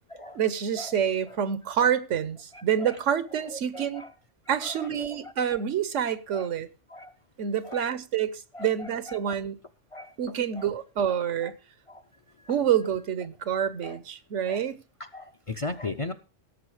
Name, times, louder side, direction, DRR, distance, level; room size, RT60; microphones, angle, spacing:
voice 1, 0.3-4.0 4.5-6.7 7.4-9.6 10.2-11.5 12.5-14.8, right 9 dB, 85° right, 1.2 m, -27 dB
voice 2, 3.5-4.1 4.5-5.1 6.3-6.5 6.9-7.1 7.6-7.8 8.5-8.7 9.1-9.3 9.9-10.1 10.6-10.7 11.1-11.2 11.9-12.0 12.5-12.6 13.8-14.0 14.5-14.6 15.0-16.1, left 2 dB, 40° left, 0.5 m, -37 dB
17.0 x 7.0 x 4.9 m
omnidirectional pair, 1.2 m